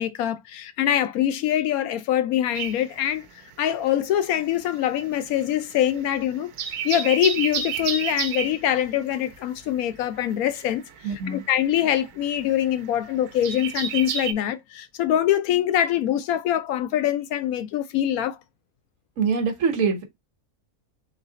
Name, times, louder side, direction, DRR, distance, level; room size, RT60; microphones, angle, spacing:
voice 1, 0.0-3.3 3.6-10.8 11.3-18.4, left 11 dB, 75° left, 1.0 m, -24 dB
sound 1, 2.5-4.0 4.2-14.3, right 7 dB, 80° right, 1.2 m, -32 dB
voice 2, 11.0-11.4 19.2-20.0, right 5 dB, 60° right, 1.3 m, -24 dB
4.0 x 3.0 x 3.8 m
omnidirectional pair, 1.6 m